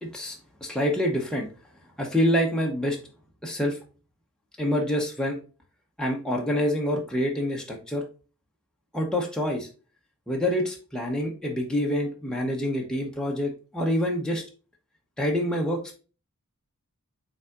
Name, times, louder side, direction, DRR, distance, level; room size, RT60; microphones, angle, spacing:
voice 1, 0.0-0.4 0.6-1.5 2.0-3.0 3.4-3.8 4.6-5.4 6.0-8.0 8.9-9.7 10.3-14.4 15.2-16.0, equal, 5° left, -1 dB, 0.7 m, -26 dB
5.5 x 3.4 x 2.4 m, 0.35 s
head